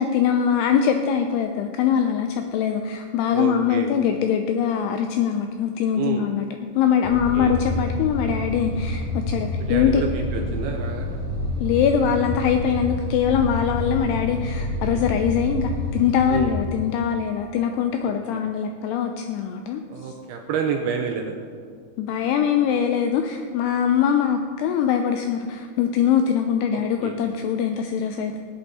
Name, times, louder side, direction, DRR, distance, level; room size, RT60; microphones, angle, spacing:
voice 1, 0.0-6.5 6.8-10.0 11.6-19.8 22.0-28.4, left 8 dB, 90° left, 6 dB, 2.3 m, -22 dB
voice 2, 3.3-3.9 5.9-6.3 7.1-7.6 9.6-11.2 14.6-15.0 16.3-16.5 18.0-18.4 19.9-21.3 26.7-27.2, right 6 dB, 80° right, 3 dB, 2.3 m, -30 dB
sound 1, 7.0-16.5, left 1 dB, 45° right, 2.6 m, -28 dB
19.0 x 7.9 x 4.1 m, 2.1 s
omnidirectional pair, 5.3 m